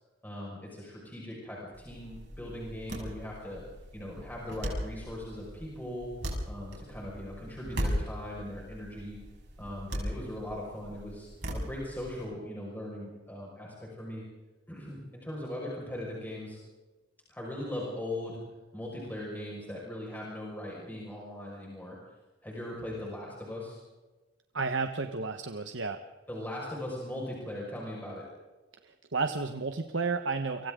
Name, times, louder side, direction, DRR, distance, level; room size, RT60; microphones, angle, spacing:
voice 1, 0.2-3.6 3.9-6.1 6.5-9.2 9.6-14.2 14.7-16.6 17.3-18.4 18.7-22.0 22.4-23.8 26.3-28.2, left 1 dB, 10° left, -4 dB, 5.5 m, -39 dB
sound 1, 1.7-12.2, equal, 60° right, 6.4 m, -38 dB
voice 2, 24.5-26.0 28.8-30.7, right 4 dB, 80° right, 7 dB, 1.2 m, -32 dB
30.0 x 24.5 x 3.8 m, 1.2 s
head